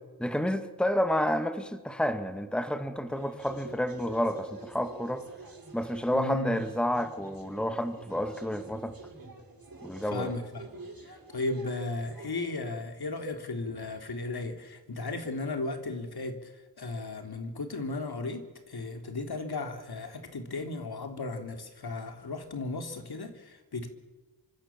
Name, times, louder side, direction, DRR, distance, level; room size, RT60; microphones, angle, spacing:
voice 1, 0.2-5.2 5.7-8.9 9.8-10.3, equal, ahead, 8 dB, 1.9 m, -30 dB
sound 1, 3.1-12.5, right 3 dB, 55° right, 6.1 m, -47 dB
voice 2, 6.1-6.6 10.1-10.7 11.0-23.9, left 3 dB, 65° left, 5 dB, 3.5 m, -35 dB
25.5 x 25.0 x 7.4 m, 1.2 s
wide cardioid pair, 75°, 40 cm